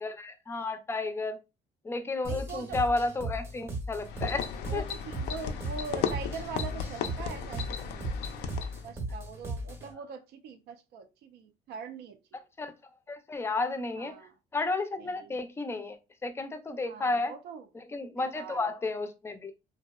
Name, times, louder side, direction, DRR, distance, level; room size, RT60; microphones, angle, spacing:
voice 1, 0.0-1.4 1.8-4.8 12.6-12.7 13.1-14.2 14.5-17.4 17.7-19.5, left 3 dB, 15° left, 0.4 m, -32 dB
sound 1, 2.2-9.9, right 1 dB, 15° right, 0.7 m, -37 dB
voice 2, 2.3-2.8 4.7-8.1 8.8-12.4 14.0-14.3 15.0-15.4 16.8-17.7 18.2-18.7, right 5 dB, 75° right, 0.4 m, -42 dB
sound 2, 4.0-8.9, left 7 dB, 80° left, 0.4 m, -36 dB
2.6 x 2.0 x 2.2 m
cardioid pair, 110°, 17 cm